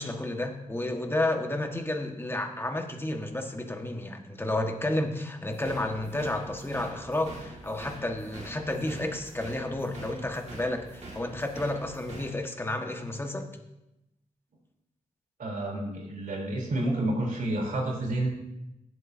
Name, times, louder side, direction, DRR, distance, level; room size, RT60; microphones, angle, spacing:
voice 1, 0.0-13.4, left 1 dB, 15° left, 3 dB, 1.6 m, -31 dB
sound 1, 5.5-12.3, right 1 dB, 50° right, 2.2 m, -45 dB
voice 2, 15.4-18.3, right 1 dB, 70° right, -2 dB, 3.7 m, -29 dB
18.0 x 8.0 x 2.8 m, 0.90 s
cardioid pair, 70°, 14 cm